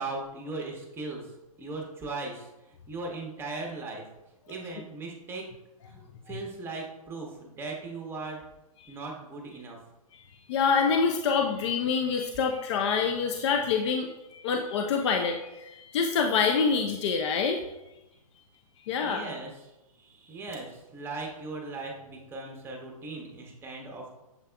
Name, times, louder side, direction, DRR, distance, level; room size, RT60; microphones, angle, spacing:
voice 1, 0.0-1.3 1.6-2.5 2.9-4.0 4.5-5.5 5.9-6.0 6.3-8.4 8.9-9.8 19.0-19.5 20.0-24.1, right 3 dB, 10° right, 0 dB, 0.9 m, -38 dB
voice 2, 10.1-17.6 18.8-19.2, left 5 dB, 50° left, 3 dB, 0.5 m, -26 dB
6.9 x 3.4 x 2.2 m, 0.96 s
hypercardioid pair, 125°, 19 cm